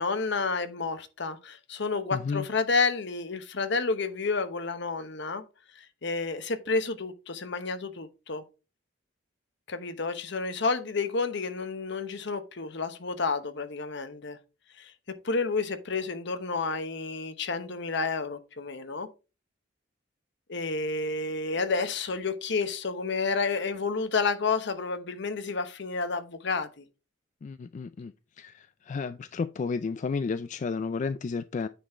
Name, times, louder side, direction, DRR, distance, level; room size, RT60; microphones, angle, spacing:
voice 1, 0.0-5.4 5.8-8.4 9.7-14.4 14.8-14.9 15.2-19.1 20.5-26.8, left 4 dB, 65° left, 1.0 m, -30 dB
voice 2, 2.1-2.5 27.4-28.1 28.4-31.7, left 4 dB, 40° left, 0.3 m, -32 dB
9.3 x 4.2 x 4.3 m
head